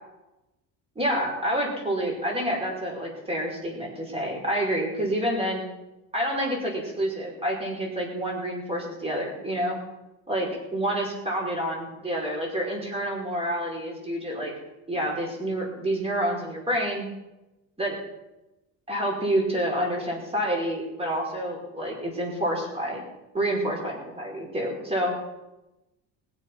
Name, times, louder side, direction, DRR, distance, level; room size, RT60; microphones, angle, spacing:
voice 1, 0.9-5.6 6.1-9.8 10.3-10.5 10.7-14.5 14.9-17.1 17.8-18.0 18.9-23.0 23.3-25.2, right 1 dB, 15° right, -2 dB, 4.9 m, -28 dB
21.5 x 7.4 x 6.0 m, 0.98 s
cardioid pair, 125°, 36 cm